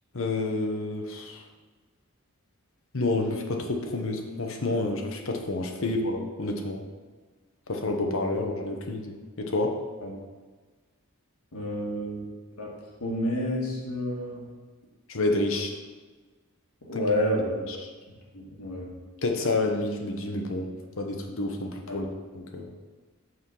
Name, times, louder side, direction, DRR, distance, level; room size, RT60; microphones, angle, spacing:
voice 1, 0.1-1.4 2.9-6.8 7.7-9.8 15.1-15.7 17.7-17.8 19.2-22.1 22.3-22.7, left 2 dB, 60° left, 3 dB, 0.9 m, -29 dB
voice 2, 11.5-12.3 12.6-12.7 13.0-14.4 16.9-17.7 18.3-18.9 21.9-22.0, equal, 80° left, -3 dB, 1.9 m, -29 dB
6.3 x 4.7 x 5.4 m, 1.4 s
head